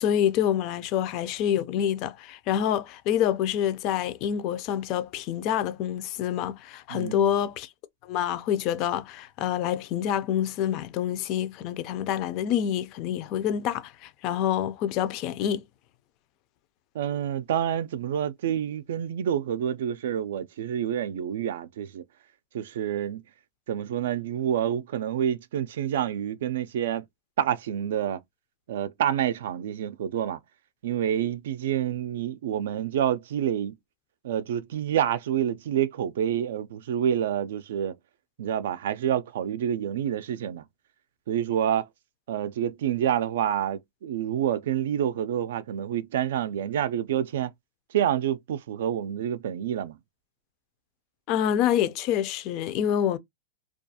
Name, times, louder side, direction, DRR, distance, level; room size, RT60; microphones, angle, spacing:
voice 1, 0.0-7.7 8.1-15.6 51.3-53.2, left 10 dB, 40° left, 0.3 m, -27 dB
voice 2, 6.9-7.3 16.9-22.0 22.5-23.2 23.7-27.0 27.4-28.2 28.7-30.4 30.8-33.7 34.2-37.9 38.4-40.6 41.3-41.9 42.3-47.5 47.9-50.0, right 10 dB, 75° right, 0.3 m, -28 dB
2.3 x 2.3 x 2.7 m
supercardioid pair, 155°, 0 cm